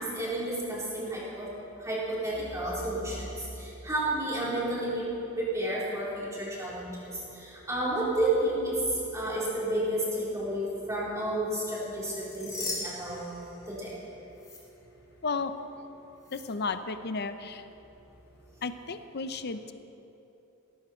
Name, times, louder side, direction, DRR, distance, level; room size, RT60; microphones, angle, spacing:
voice 1, 0.0-1.5 1.8-5.1 5.4-13.2 13.7-14.0, right 1 dB, 15° right, -8 dB, 4.1 m, -31 dB
sound 1, 12.0-14.0 14.4-14.6 16.2-16.4, left 2 dB, 15° left, 3.2 m, -39 dB
voice 2, 16.3-17.7 18.6-19.7, left 4 dB, 50° left, 10 dB, 0.6 m, -33 dB
17.0 x 15.0 x 4.5 m, 2.9 s
head